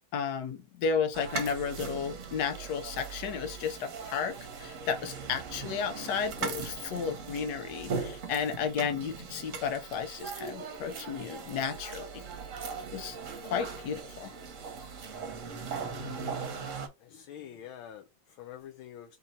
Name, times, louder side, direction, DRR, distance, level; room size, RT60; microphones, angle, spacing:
voice 1, 0.1-12.2 12.9-13.2 13.4-14.3, left 6 dB, 65° left, 1.5 m, -33 dB
sound 1, 1.1-16.9, right 5 dB, 50° right, 1.1 m, -39 dB
voice 2, 17.0-19.2, left 10 dB, 90° left, 1.5 m, -46 dB
4.0 x 3.0 x 4.0 m
omnidirectional pair, 2.2 m